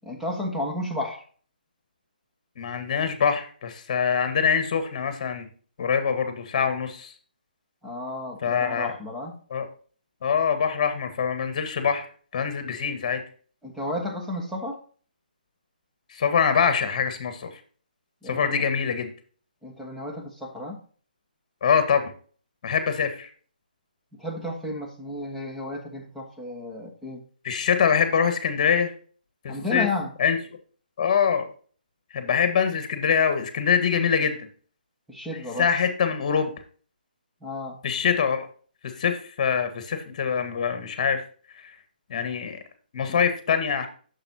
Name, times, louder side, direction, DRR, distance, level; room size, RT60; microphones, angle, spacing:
voice 1, 0.0-1.3 7.8-9.4 13.6-14.8 18.2-18.6 19.6-20.8 24.2-27.2 29.5-30.1 35.1-35.7 37.4-37.8 43.1-43.2, left 1 dB, 5° right, -1 dB, 1.4 m, -32 dB
voice 2, 2.6-5.5 5.8-7.1 8.4-8.9 9.5-9.7 10.2-12.1 12.3-13.2 16.1-17.5 18.3-19.1 21.6-22.1 22.6-23.3 27.4-28.9 29.4-29.9 30.2-30.4 31.0-31.5 32.1-34.4 35.6-36.5 37.8-38.5 39.0-41.2 42.1-42.6 42.9-43.9, left 7 dB, 40° left, 9 dB, 1.6 m, -24 dB
8.7 x 6.8 x 2.9 m, 0.42 s
hypercardioid pair, 150°, 5 cm